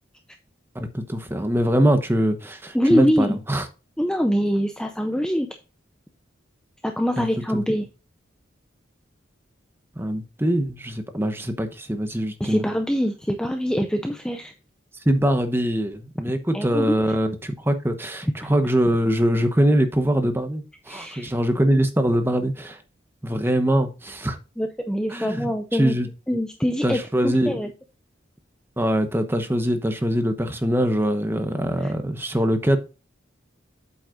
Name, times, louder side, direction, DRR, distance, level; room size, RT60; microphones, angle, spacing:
voice 1, 0.7-3.7 7.2-7.3 7.5-7.6 10.0-12.6 15.0-22.8 23.2-24.4 25.1-26.1 26.8-27.6 28.8-32.8, equal, 10° right, 1.0 m, -23 dB
voice 2, 2.7-3.4 4.0-5.5 6.8-7.9 12.4-14.5 16.5-16.9 20.9-21.3 24.6-25.9 26.3-27.7 31.8-31.9, equal, 5° left, 0.5 m, -24 dB
8.2 x 7.8 x 2.5 m
head